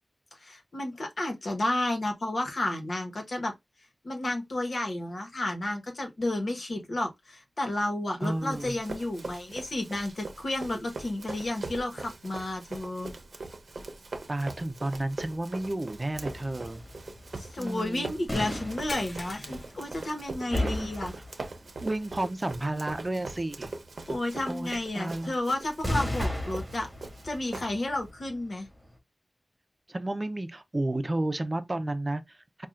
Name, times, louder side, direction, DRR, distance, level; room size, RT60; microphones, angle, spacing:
voice 1, 0.3-3.5 4.0-13.1 17.3-21.1 24.1-26.9 27.2-28.7, left 1 dB, 70° left, 1.2 m, -32 dB
voice 2, 8.2-8.8 14.3-16.8 17.6-18.1 20.5-20.9 21.8-23.7 24.5-25.3 29.9-32.7, right 1 dB, 35° right, 0.6 m, -32 dB
Run, 8.2-28.1, right 3 dB, 80° right, 0.7 m, -42 dB
sound 1, 16.1-20.2 20.5-21.6 25.8-28.8, left 1 dB, 10° left, 1.8 m, -35 dB
sound 2, 18.9-20.8 21.1-21.3 21.8-21.9 23.6-23.7, left 2 dB, 45° left, 0.7 m, -43 dB
5.5 x 2.3 x 2.5 m
wide cardioid pair, 65°, 0 cm